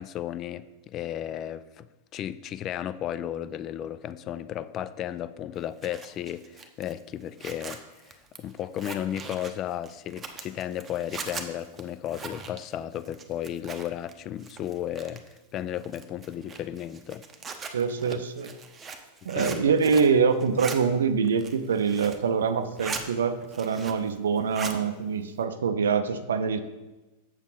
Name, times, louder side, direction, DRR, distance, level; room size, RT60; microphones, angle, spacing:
voice 1, 0.0-1.9 2.1-17.2 18.1-18.2 19.3-19.7, left 11 dB, 35° left, 0.3 m, -34 dB
Zipper (clothing), 5.6-14.1 14.4-15.4 15.8-20.2 20.4-20.8 21.2-22.3 22.6-23.1 23.4-24.1 24.4-24.8, right 5 dB, 20° right, 0.9 m, -40 dB
voice 2, 17.7-18.5 19.3-26.6, right 6 dB, 65° right, 0.5 m, -25 dB
7.2 x 7.0 x 4.0 m
figure-of-eight pair, 90°, 0 cm